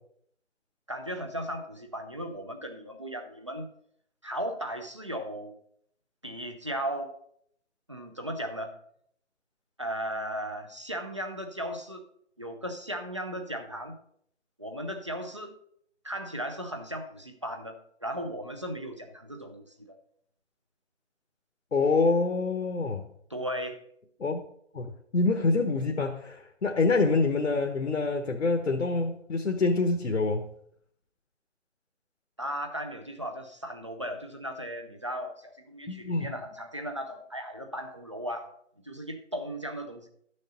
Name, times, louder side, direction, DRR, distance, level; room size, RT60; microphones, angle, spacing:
voice 1, 0.9-3.7 4.2-5.6 6.2-7.1 7.9-8.7 9.8-12.1 12.4-14.0 14.6-15.6 16.0-17.7 18.0-20.0 23.3-23.8 32.4-38.5 38.8-40.1, equal, 25° right, 0.5 m, -36 dB
voice 2, 21.7-23.0 24.2-24.4 24.7-24.9 25.1-30.5 35.9-36.3, left 3 dB, 80° left, 1.1 m, -26 dB
11.5 x 6.5 x 4.1 m
figure-of-eight pair, 160°, 37 cm